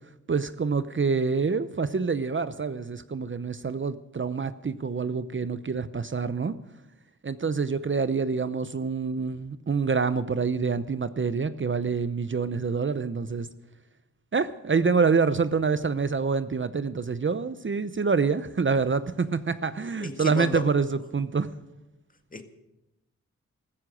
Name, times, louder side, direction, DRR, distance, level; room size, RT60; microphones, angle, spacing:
voice 1, 0.3-6.5 7.2-13.5 14.3-21.5, right 5 dB, 40° right, 13 dB, 0.8 m, -26 dB
voice 2, 20.0-20.7 22.3-22.4, left 2 dB, 30° left, 6 dB, 2.0 m, -33 dB
14.5 x 14.5 x 6.4 m, 0.94 s
cardioid pair, 55°, 30 cm